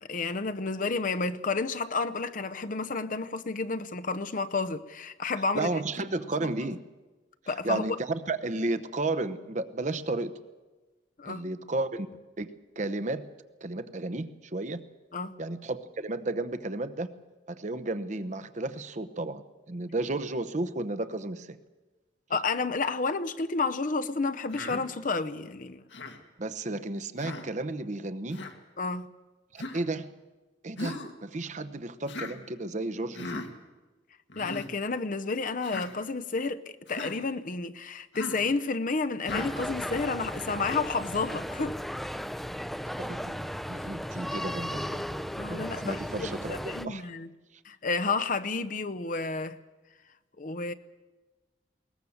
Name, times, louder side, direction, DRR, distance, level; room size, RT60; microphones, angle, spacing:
voice 1, 0.0-5.7 6.4-6.5 7.5-8.0 11.2-11.4 15.1-15.4 22.3-25.8 28.8-29.1 34.3-41.8 45.4-47.3 47.6-49.6 50.4-50.7, left 4 dB, 45° left, 0.8 m, -31 dB
voice 2, 5.5-6.8 7.6-10.3 11.3-12.1 12.4-12.5 12.8-13.3 13.6-14.8 15.4-17.1 17.5-21.6 26.4-28.4 29.5-30.1 30.6-33.4 43.0-43.4 43.7-45.0 45.5-47.0, right 2 dB, 40° right, 0.9 m, -33 dB
Human voice, 24.5-24.8 25.9-26.2 27.2-27.5 28.3-28.5 29.6-29.8 30.8-31.1 32.1-32.3 33.1-33.5 34.3-34.7 35.6-35.9 36.9-37.2 38.1-38.5 39.2-39.5, left 2 dB, 80° left, 1.9 m, -37 dB
sound 1, 39.3-46.9, equal, ahead, 0.6 m, -36 dB
21.0 x 19.0 x 7.2 m
head